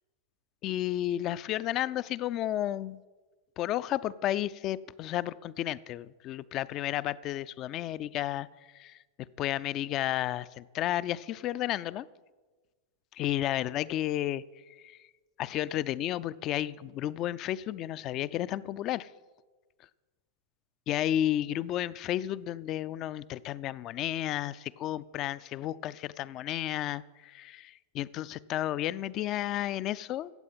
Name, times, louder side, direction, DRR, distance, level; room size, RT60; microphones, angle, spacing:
voice 1, 0.6-3.0 3.6-8.5 8.7-8.9 9.4-12.1 13.2-14.4 14.8-15.0 15.4-19.1 20.9-30.3, left 13 dB, 35° left, 18 dB, 0.4 m, -32 dB
15.0 x 8.1 x 5.6 m, 1.3 s
figure-of-eight pair, 90°, 0 cm